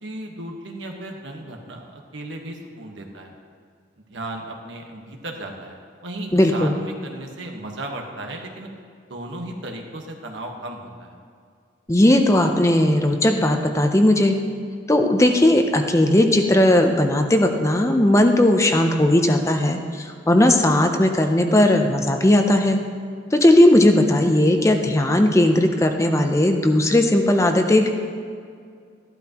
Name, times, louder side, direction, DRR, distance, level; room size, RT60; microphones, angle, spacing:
voice 1, 0.0-3.3 4.0-8.7 9.1-11.2, right 1 dB, 85° right, 2 dB, 1.4 m, -35 dB
voice 2, 6.3-6.8 11.9-14.3 14.9-22.8 23.3-27.9, left 1 dB, 15° left, 5 dB, 0.6 m, -17 dB
14.5 x 11.5 x 3.0 m, 2.2 s
head